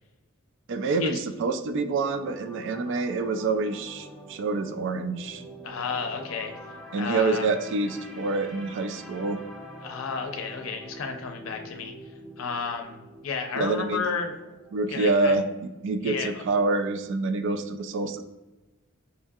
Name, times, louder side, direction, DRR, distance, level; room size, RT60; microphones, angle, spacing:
voice 1, 0.7-5.4 6.9-9.4 13.6-14.0 14.7-15.4 15.8-18.2, right 3 dB, 60° right, 9 dB, 0.3 m, -27 dB
sound 1, 2.0-16.2 16.5-16.7, equal, ahead, 0.6 m, -45 dB
voice 2, 5.6-6.5 6.9-7.5 9.8-11.9 12.4-14.4 14.9-15.4 16.0-16.4, left 5 dB, 80° left, 4 dB, 0.5 m, -32 dB
5.4 x 2.6 x 2.3 m, 1.1 s
head